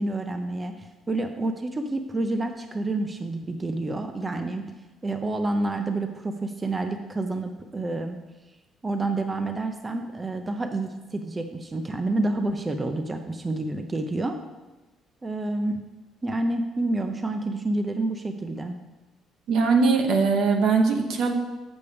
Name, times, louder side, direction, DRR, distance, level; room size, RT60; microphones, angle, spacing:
voice 1, 0.0-4.6 5.0-8.2 8.8-14.4 15.2-15.8 16.2-18.8, right 2 dB, 20° right, 6 dB, 0.5 m, -28 dB
voice 2, 19.5-21.3, right 4 dB, 70° right, 3 dB, 1.0 m, -21 dB
8.0 x 7.0 x 3.4 m, 1.1 s
cardioid pair, 115°, 0 cm